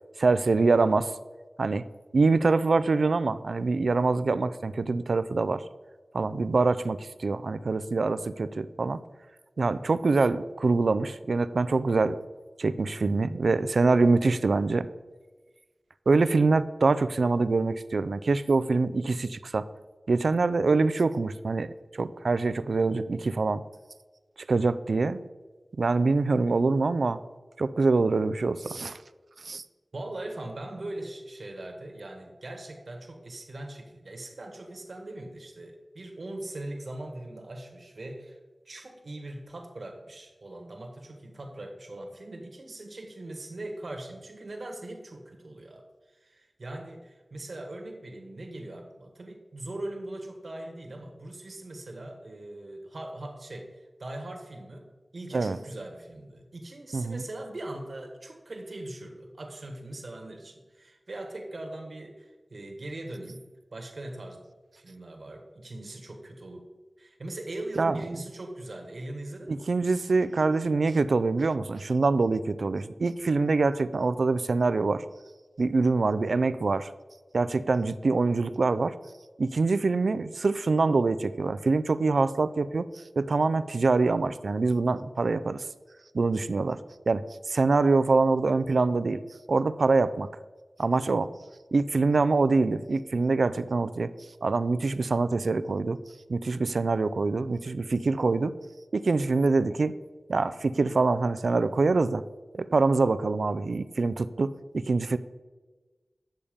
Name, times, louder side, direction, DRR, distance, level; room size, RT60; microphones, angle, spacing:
voice 1, 0.2-1.1 1.6-1.8 2.1-5.6 6.1-9.0 9.6-12.2 12.6-14.9 16.1-19.7 20.1-23.6 24.5-25.2 25.8-27.2 27.6-29.0 29.4-29.6 55.3-55.6 56.9-57.2 67.8-68.0 69.5-75.0 75.6-76.9 77.3-79.0 79.4-82.9 83.2-85.6 86.1-86.8 87.1-89.2 89.5-90.3 90.8-91.3 91.7-94.1 94.4-96.0 96.3-98.6 98.9-100.0 100.3-102.2 102.5-105.2, right 3 dB, 80° right, 14 dB, 0.4 m, -25 dB
voice 2, 29.9-38.4 38.6-54.9 55.1-64.4 64.8-66.7 67.0-69.7, right 1 dB, 65° right, 3 dB, 1.5 m, -40 dB
9.1 x 6.9 x 5.1 m, 1.3 s
wide cardioid pair, 75°, 0 cm